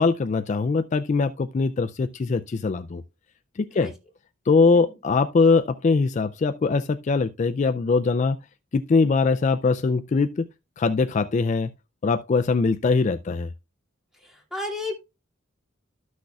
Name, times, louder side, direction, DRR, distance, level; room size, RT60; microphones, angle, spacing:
voice 1, 0.0-3.0 3.6-3.9 4.5-8.4 8.7-10.4 10.8-11.7 12.0-13.5, left 4 dB, 35° left, 0.3 m, -22 dB
voice 2, 14.1-14.9, left 2 dB, ahead, 2.5 m, -33 dB
13.0 x 6.3 x 2.3 m
head